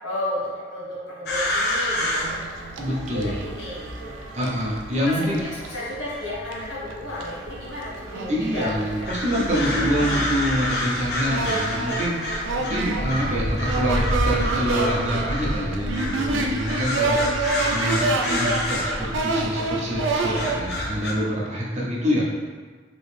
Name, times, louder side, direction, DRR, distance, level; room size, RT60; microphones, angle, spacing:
voice 1, 0.0-2.4 2.7-4.1 4.9-9.3 9.5-9.8 12.5-12.6 17.9-18.1, left 1 dB, 80° left, -7 dB, 1.2 m, -33 dB
sound 1, 1.3-21.1, left 1 dB, 55° left, 0.5 m, -29 dB
sound 2, 2.0-5.9 6.5-6.6 6.9-20.6, right 3 dB, 85° right, 0.4 m, -29 dB
voice 2, 2.8-3.4 4.3-5.4 8.3-22.2, equal, 35° right, -4 dB, 0.6 m, -26 dB
3.0 x 2.6 x 3.3 m, 1.5 s
head